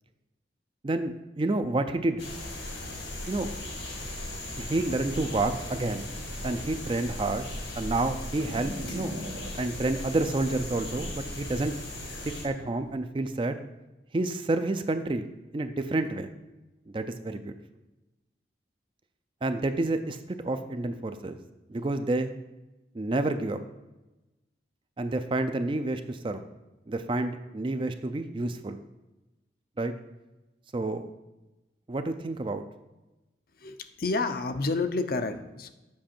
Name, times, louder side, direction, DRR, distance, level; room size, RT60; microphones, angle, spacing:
voice 1, 0.8-2.2 3.3-3.5 4.6-6.1 6.4-7.5 7.8-9.1 9.6-11.7 12.4-13.6 14.1-15.3 15.5-16.3 16.9-17.5 19.4-21.4 21.7-22.3 22.9-23.6 25.0-26.4 26.9-28.8 29.8-29.9 30.7-31.1 31.9-32.7, right 2 dB, 30° right, 9 dB, 0.4 m, -29 dB
sound 1, 2.2-12.4, left 1 dB, 85° left, 2.0 m, -38 dB
sound 2, 8.2-12.9, right 1 dB, 75° right, 0.9 m, -42 dB
voice 2, 33.6-35.7, left 3 dB, 50° left, 9 dB, 0.5 m, -29 dB
7.5 x 5.6 x 4.4 m, 1.0 s
head